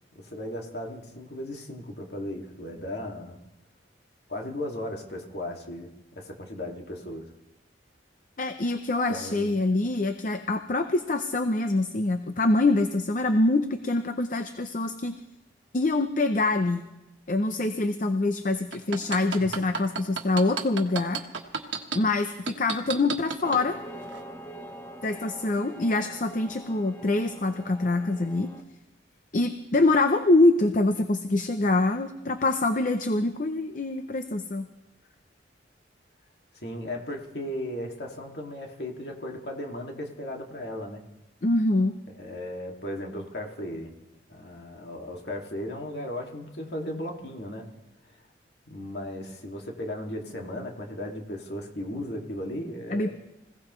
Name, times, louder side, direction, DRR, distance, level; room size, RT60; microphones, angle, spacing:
voice 1, 0.1-3.4 4.3-5.9 6.2-7.3 9.1-9.6 19.4-19.5 36.6-41.0 42.2-43.9 44.3-47.7 48.1-48.2 48.7-53.1, left 1 dB, 60° left, 1 dB, 2.3 m, -36 dB
voice 2, 8.4-15.2 15.7-16.9 17.3-21.2 21.9-23.8 25.0-28.5 29.3-34.7 41.4-41.9 52.9-53.1, left 2 dB, 45° left, 8 dB, 0.7 m, -25 dB
sound 1, 18.7-22.0 22.5-23.6 24.1-24.2, right 5 dB, 90° right, 1.4 m, -30 dB
sound 2, 23.4-28.6, right 1 dB, 15° left, 0.9 m, -43 dB
25.5 x 17.0 x 3.2 m, 0.97 s
head